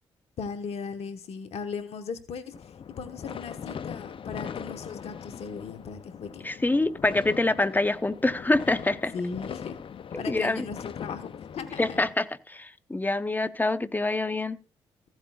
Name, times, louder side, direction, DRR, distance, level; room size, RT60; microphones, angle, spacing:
voice 1, 0.4-6.5 9.1-9.8 10.1-12.0, left 5 dB, 70° left, 1.2 m, -37 dB
sound 1, 2.5-12.1, left 7 dB, 50° left, 0.6 m, -40 dB
voice 2, 6.4-9.1 10.3-10.6 11.8-14.6, left 2 dB, 15° left, 0.9 m, -26 dB
15.0 x 7.9 x 2.4 m
supercardioid pair, 50°, 11 cm